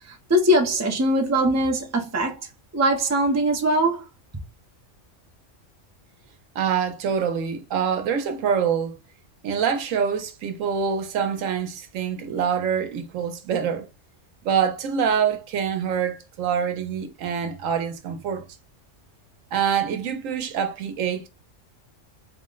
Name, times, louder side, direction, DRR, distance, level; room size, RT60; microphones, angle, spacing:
voice 1, 0.0-2.4 2.7-4.0, right 1 dB, 20° right, 0.5 m, -21 dB
voice 2, 6.5-9.0 9.4-13.9 14.4-18.5 19.5-21.3, right 7 dB, 85° right, 1.1 m, -25 dB
4.2 x 2.1 x 3.8 m
omnidirectional pair, 1.3 m